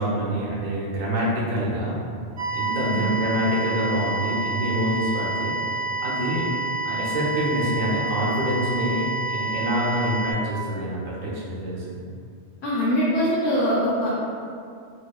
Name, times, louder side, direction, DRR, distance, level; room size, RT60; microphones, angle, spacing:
voice 1, 0.0-2.0 2.5-5.5 6.0-6.5 6.8-11.8, equal, 50° right, -6 dB, 0.6 m, -26 dB
sound 1, 2.4-10.3, right 2 dB, 90° right, 1.0 m, -28 dB
voice 2, 2.7-3.1 12.6-14.1, equal, 75° left, -8 dB, 0.9 m, -23 dB
2.8 x 2.0 x 2.3 m, 2.3 s
omnidirectional pair, 1.2 m